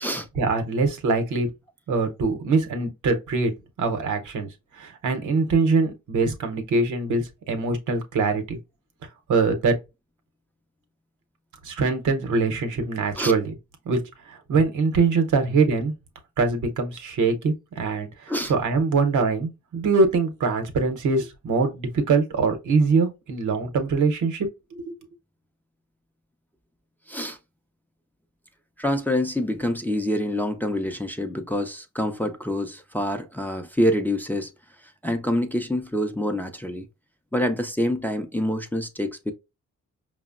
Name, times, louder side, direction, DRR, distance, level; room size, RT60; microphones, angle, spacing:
voice 1, 0.3-1.5 1.9-3.5 3.8-4.5 4.8-8.6 9.3-9.7 11.6-13.5 13.9-14.0 14.3-15.9 16.4-25.0, right 4 dB, 75° right, 0.8 m, -23 dB
voice 2, 28.8-34.5 35.0-36.9 37.3-39.3, left 1 dB, 5° left, 0.4 m, -26 dB
4.9 x 2.0 x 2.3 m
cardioid pair, 65°, 30 cm